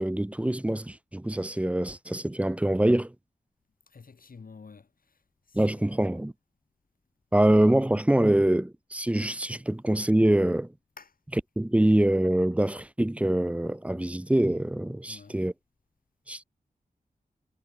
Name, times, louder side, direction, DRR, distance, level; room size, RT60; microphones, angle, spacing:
voice 1, 0.0-3.1 5.5-6.3 7.3-10.7 11.6-15.5 16.3-16.4, right 1 dB, 10° right, 0.5 m, -24 dB
voice 2, 3.9-6.2 11.0-11.2 15.1-15.4, left 5 dB, 70° left, 5.6 m, -51 dB
wide cardioid pair, 110°, 15 cm